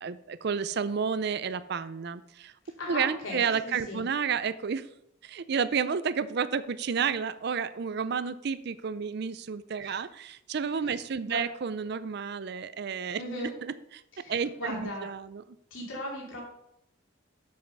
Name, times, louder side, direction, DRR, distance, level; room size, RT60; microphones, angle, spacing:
voice 1, 0.0-2.5 2.9-4.9 5.2-14.0 14.3-15.4, right 6 dB, 55° right, 14 dB, 0.5 m, -31 dB
voice 2, 2.8-4.0 9.8-10.0 10.8-11.4 13.2-13.5 14.1-15.1 15.7-16.4, left 1 dB, 80° left, -3 dB, 2.9 m, -38 dB
7.8 x 7.4 x 5.5 m, 0.78 s
head